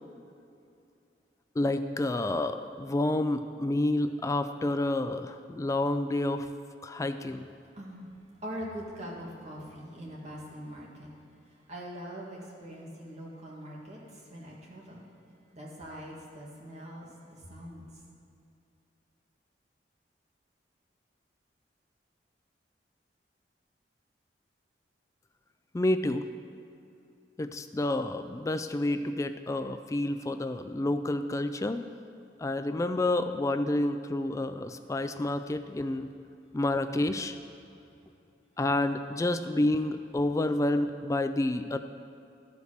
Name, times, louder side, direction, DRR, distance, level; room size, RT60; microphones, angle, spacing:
voice 1, 1.6-6.5 6.8-7.5 25.7-26.3 27.4-31.8 32.4-36.1 36.5-37.4 38.6-41.8, left 1 dB, 20° left, 9 dB, 0.3 m, -29 dB
voice 2, 7.7-8.1 8.4-11.1 11.5-15.0 15.5-17.9, equal, 40° right, -4 dB, 2.1 m, -42 dB
13.5 x 5.2 x 6.5 m, 2.6 s
head